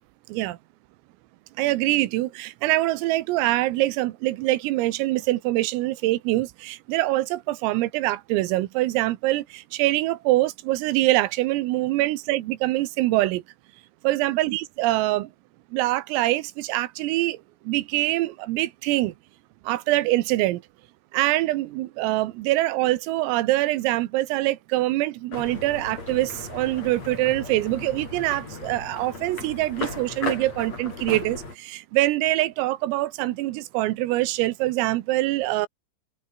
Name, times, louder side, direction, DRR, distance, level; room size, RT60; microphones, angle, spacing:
voice 1, 1.6-13.4 14.0-15.3 15.7-17.4 17.7-19.1 19.7-20.6 21.1-35.7, right 17 dB, 85° right, 3.8 m, -24 dB
sound 1, 25.3-31.6, left 3 dB, 30° left, 8.2 m, -36 dB
omnidirectional pair, 5.9 m